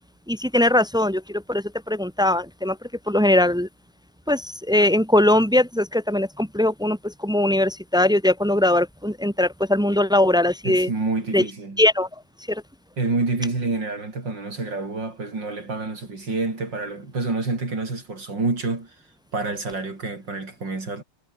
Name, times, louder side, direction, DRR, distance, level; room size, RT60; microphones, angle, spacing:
voice 1, 0.3-1.2 1.5-2.7 3.1-3.7 4.3-4.4 4.7-7.0 7.2-10.9 11.3-11.4 11.8-12.1 12.5-12.6, left 1 dB, 5° right, 0.6 m, -20 dB
voice 2, 10.6-11.8 13.0-19.0 19.3-21.0, right 3 dB, 75° right, 5.7 m, -28 dB
omnidirectional pair, 2.0 m